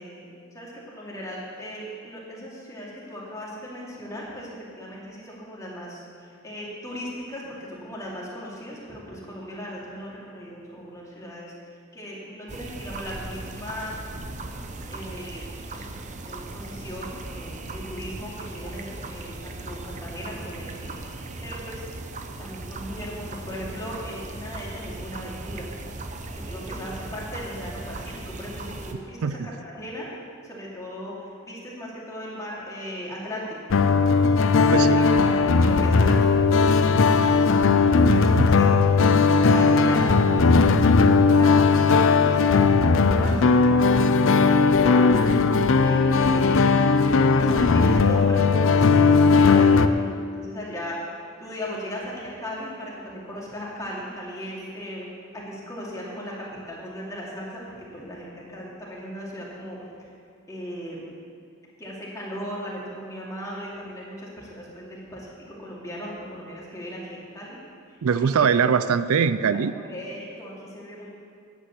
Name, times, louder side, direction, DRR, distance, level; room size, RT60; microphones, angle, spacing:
voice 1, 0.0-11.5 11.9-14.0 14.9-15.4 15.7-15.8 16.2-20.9 21.4-21.8 22.4-25.7 26.3-30.1 30.4-31.1 31.4-33.6 33.8-33.9 34.2-37.4 38.0-38.7 39.5-41.8 42.1-45.4 45.8-46.7 47.5-50.0 50.3-51.0 51.4-55.1 55.3-57.6 57.9-59.8 60.5-61.0 61.8-67.6 67.9-68.0 68.3-68.5 69.8-71.1, equal, 15° left, -5 dB, 2.6 m, -37 dB
sound 1, 12.5-28.9, right 2 dB, 35° right, 0.8 m, -38 dB
sound 2, 33.7-49.9, left 4 dB, 65° left, 0.5 m, -18 dB
voice 2, 68.0-69.7, right 6 dB, 80° right, 13 dB, 0.4 m, -22 dB
9.7 x 8.3 x 8.2 m, 2.3 s
head